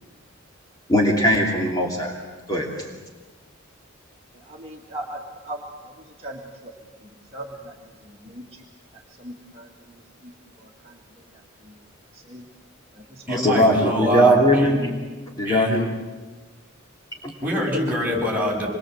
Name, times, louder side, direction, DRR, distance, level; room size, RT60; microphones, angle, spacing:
voice 1, 0.9-2.1 2.5-2.7 13.3-14.8 15.4-15.9 17.2-17.3, equal, 20° left, -1 dB, 2.8 m, -19 dB
voice 2, 4.5-5.2 5.5-5.6 6.2-6.7 7.3-7.7 8.1-8.4 9.2-9.7 12.3-12.4 13.1-13.2, right 1 dB, 30° right, -2 dB, 1.9 m, -37 dB
voice 3, 13.3-14.8 15.4-15.8 17.4-18.7, equal, 10° right, -3 dB, 6.6 m, -25 dB
26.0 x 22.0 x 7.9 m, 1.3 s
head